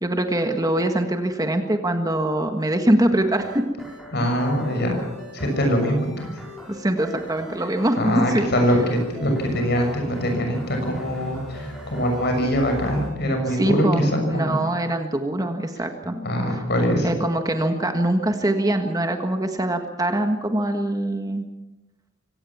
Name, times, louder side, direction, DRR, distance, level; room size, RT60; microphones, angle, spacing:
voice 1, 0.0-3.6 6.7-8.5 13.6-16.1 17.0-21.4, right 1 dB, 20° right, 5 dB, 1.6 m, -23 dB
sound 1, 3.2-13.1, equal, ahead, 5.6 m, -39 dB
voice 2, 4.1-5.0 5.3-6.3 8.0-14.6 16.1-17.1, equal, 55° left, 4 dB, 6.6 m, -23 dB
25.0 x 17.5 x 7.2 m, 1.0 s
head